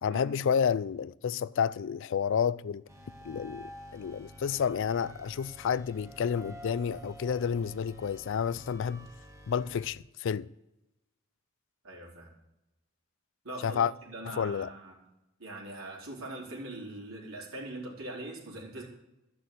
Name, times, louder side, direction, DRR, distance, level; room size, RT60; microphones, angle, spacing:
voice 1, 0.0-2.8 3.2-9.1 9.5-10.5 13.6-13.9 14.3-14.7, left 7 dB, 65° left, 0.4 m, -30 dB
sound 1, 2.9-9.9, equal, 15° right, 2.1 m, -49 dB
voice 2, 11.8-12.3 13.4-14.9 15.4-18.8, right 1 dB, 80° right, 3.9 m, -42 dB
13.0 x 6.1 x 8.3 m
head